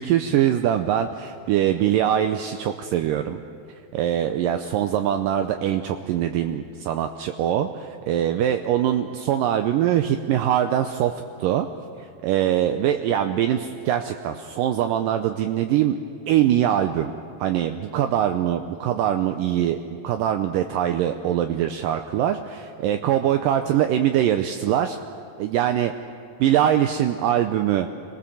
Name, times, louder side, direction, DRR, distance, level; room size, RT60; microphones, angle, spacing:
voice 1, 0.0-3.4 3.9-11.7 12.0-16.0 16.3-17.1 17.4-19.8 20.0-25.0 25.4-25.9 26.4-27.9, right 11 dB, 80° right, 7 dB, 2.2 m, -23 dB
27.0 x 18.5 x 7.1 m, 2.4 s
omnidirectional pair, 4.2 m